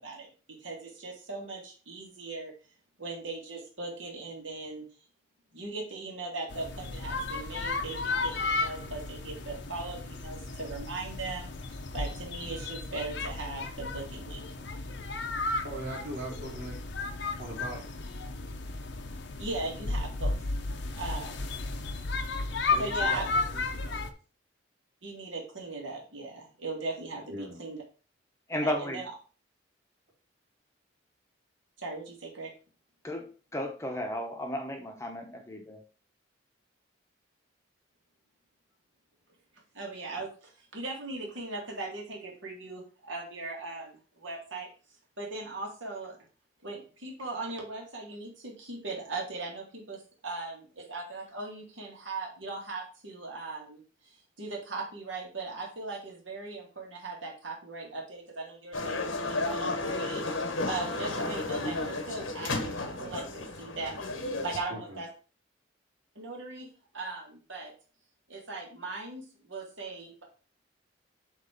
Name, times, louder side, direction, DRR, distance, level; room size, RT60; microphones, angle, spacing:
voice 1, 0.0-2.5 3.0-4.8 5.5-11.5 11.9-14.4 19.4-20.3 20.9-21.5 22.8-23.3 25.0-27.8 28.6-29.1 31.8-32.5 39.7-44.7 45.2-46.2 46.6-62.7 63.0-64.0 64.4-65.1 66.2-66.7 66.9-67.7 68.3-70.2, right 3 dB, 75° right, -1 dB, 2.3 m, -39 dB
sound 1, 6.5-24.1, left 3 dB, 60° left, 0.7 m, -34 dB
voice 2, 15.6-16.8 17.4-17.9 22.7-24.1 27.3-27.6 64.7-65.0, right 1 dB, 50° right, -4 dB, 3.4 m, -40 dB
voice 3, 28.5-29.0 33.0-35.8, left 1 dB, 15° left, 3 dB, 0.8 m, -34 dB
sound 2, 58.7-64.6, left 2 dB, 90° left, 1.3 m, -33 dB
7.9 x 3.2 x 5.1 m, 0.36 s
head